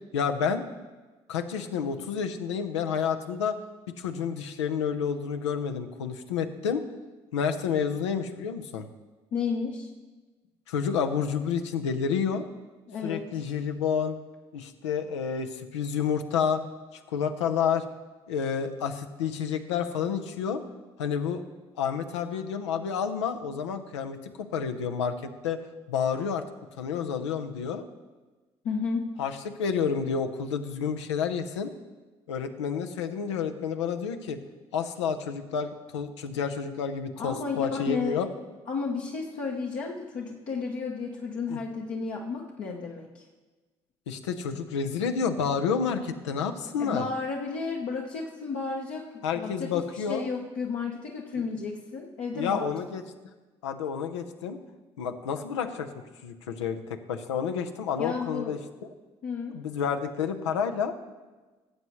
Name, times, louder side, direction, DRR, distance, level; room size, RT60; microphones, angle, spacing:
voice 1, 0.1-0.6 1.3-3.6 4.0-6.8 7.3-8.9 10.7-12.4 13.0-14.2 14.5-16.6 17.1-17.9 18.3-20.6 21.0-21.4 21.8-25.1 25.4-25.6 25.9-26.4 26.8-27.8 29.2-31.7 32.3-34.4 34.7-38.3 41.5-41.6 44.1-47.1 49.2-50.3 52.3-53.0 53.6-54.6 55.0-55.9 56.2-58.6 59.5-60.9, left 7 dB, 80° left, 7 dB, 0.7 m, -29 dB
voice 2, 9.3-9.9 12.9-13.3 28.6-29.1 37.2-38.2 38.7-43.2 46.8-49.1 49.3-52.7 58.0-58.6 59.2-59.6, left 4 dB, 60° left, -2 dB, 1.1 m, -32 dB
18.0 x 8.0 x 3.1 m, 1.2 s
hypercardioid pair, 50°, 15 cm